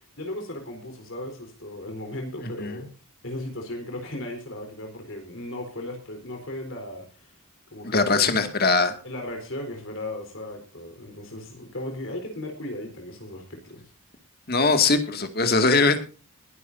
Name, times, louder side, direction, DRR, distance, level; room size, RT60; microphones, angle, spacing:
voice 1, 0.0-2.9 3.2-7.4 7.7-8.3 9.0-13.8, left 1 dB, 60° left, 4 dB, 4.1 m, -36 dB
voice 2, 2.4-2.8 7.8-8.9 14.5-16.0, left 3 dB, 45° left, 8 dB, 2.1 m, -21 dB
21.5 x 11.5 x 2.7 m, 0.34 s
head